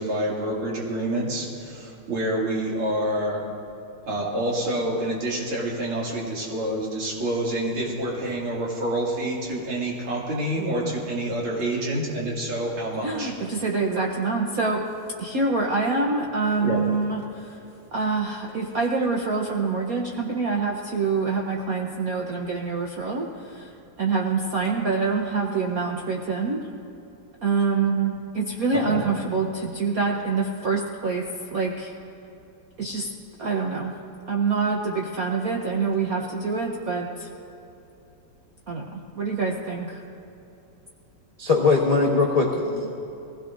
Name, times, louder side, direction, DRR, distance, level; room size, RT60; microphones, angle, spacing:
voice 1, 0.0-3.4 4.0-13.3 16.6-16.8 28.7-29.0, right 1 dB, 80° right, -4 dB, 3.3 m, -27 dB
voice 2, 10.6-10.9 13.0-14.9 15.2-17.6 17.9-23.7 24.0-26.6 27.4-31.3 31.5-31.9 32.8-33.1 33.4-33.9 34.3-37.3 38.7-40.0, right 4 dB, 55° right, -1 dB, 1.1 m, -26 dB
voice 3, 41.4-42.9, left 3 dB, 25° left, -2 dB, 0.8 m, -21 dB
21.5 x 16.5 x 2.6 m, 2.8 s
omnidirectional pair, 2.3 m